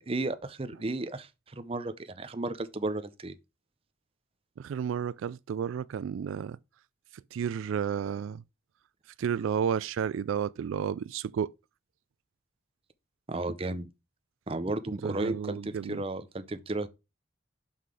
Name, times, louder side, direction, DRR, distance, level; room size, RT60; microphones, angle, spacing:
voice 1, 0.0-3.4 13.3-13.9 14.5-16.9, right 2 dB, 30° right, 0.6 m, -34 dB
voice 2, 4.6-6.6 7.3-8.4 9.2-11.5 15.0-16.0, right 7 dB, 90° right, 0.3 m, -32 dB
5.8 x 5.5 x 4.8 m
head